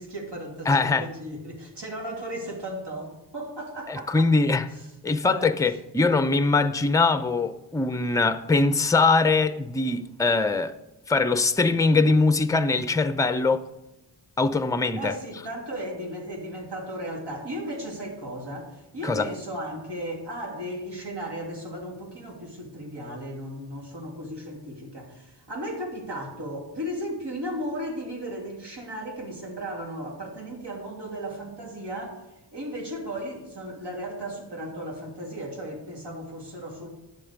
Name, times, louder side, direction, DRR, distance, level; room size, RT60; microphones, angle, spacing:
voice 1, 0.0-4.3 4.7-4.9 5.2-5.5 15.0-32.2 32.5-36.9, equal, 65° right, 2.9 m, -35 dB
voice 2, 0.7-1.1 3.9-4.7 5.0-10.7 11.1-13.6 14.4-15.1 19.0-19.3, left 3 dB, 10° left, 0.5 m, -22 dB
10.5 x 7.6 x 5.2 m
wide cardioid pair, 65°, 44 cm